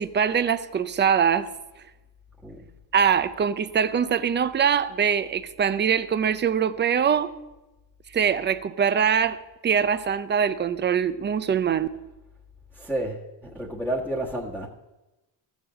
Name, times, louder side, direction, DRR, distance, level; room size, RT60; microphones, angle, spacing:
voice 1, 0.0-1.5 2.9-7.3 8.1-9.4 9.6-11.9, right 7 dB, 25° right, 0.5 m, -23 dB
voice 2, 12.7-14.7, right 1 dB, 5° right, 1.3 m, -30 dB
14.5 x 7.2 x 7.4 m
cardioid pair, 140°, 47 cm